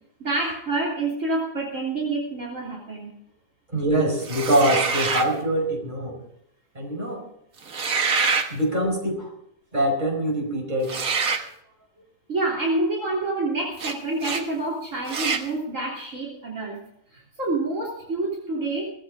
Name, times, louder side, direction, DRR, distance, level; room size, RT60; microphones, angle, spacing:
voice 1, 0.2-3.1 12.3-16.8 17.1-18.9, right 2 dB, 60° right, -2 dB, 3.6 m, -27 dB
voice 2, 3.7-6.2 6.8-7.2 8.5-9.3 9.7-11.0, right 1 dB, 30° right, 1 dB, 5.2 m, -24 dB
sound 1, 4.2-5.3 7.6-8.5 10.8-11.5 13.8-13.9 14.2-14.4 15.1-15.5, right 5 dB, 75° right, 1.9 m, -25 dB
18.5 x 15.0 x 3.6 m, 0.75 s
omnidirectional pair, 1.5 m